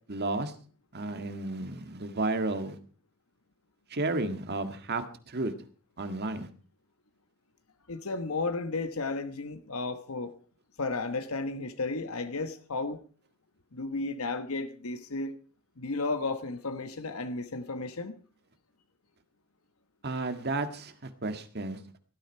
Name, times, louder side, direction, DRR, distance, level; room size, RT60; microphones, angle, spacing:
voice 1, 0.1-0.5 0.9-2.8 3.9-5.5 6.0-6.5 20.0-22.0, right 2 dB, 50° right, 1.8 m, -32 dB
voice 2, 7.9-10.3 10.8-13.0 13.7-15.3 15.8-18.2, left 3 dB, 70° left, 1.2 m, -33 dB
18.0 x 13.0 x 4.6 m
head